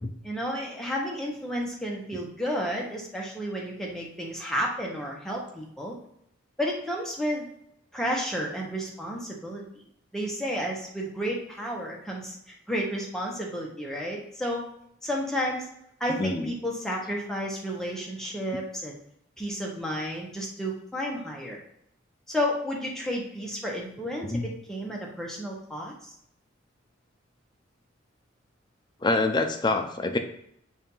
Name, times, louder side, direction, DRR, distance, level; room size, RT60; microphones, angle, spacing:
voice 1, 0.2-5.9 6.6-7.5 7.9-9.6 10.1-12.4 12.7-14.6 15.0-15.7 16.0-19.0 19.4-21.6 22.3-26.1, equal, ahead, -2 dB, 1.1 m, -31 dB
voice 2, 16.1-16.5 24.2-24.5 29.0-30.2, left 2 dB, 20° left, 6 dB, 0.5 m, -26 dB
7.1 x 2.7 x 5.5 m, 0.73 s
head